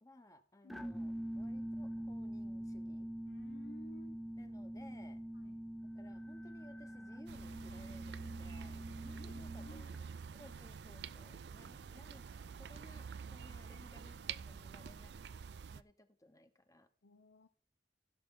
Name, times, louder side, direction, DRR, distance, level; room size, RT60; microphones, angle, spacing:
voice 1, 0.0-3.1 4.4-5.2 5.9-12.2 12.6-15.1 15.7-16.9, left 1 dB, 20° left, 9 dB, 1.0 m, -60 dB
voice 2, 0.6-0.9 3.3-4.2 5.3-5.7 9.0-9.9 11.0-11.8 17.0-17.5, left 1 dB, 80° left, 9 dB, 0.8 m, -58 dB
sound 1, 0.7-10.0, equal, ahead, 0.5 m, -44 dB
sound 2, 7.3-15.8, right 6 dB, 70° right, 0.4 m, -48 dB
16.0 x 6.7 x 3.8 m, 0.41 s
head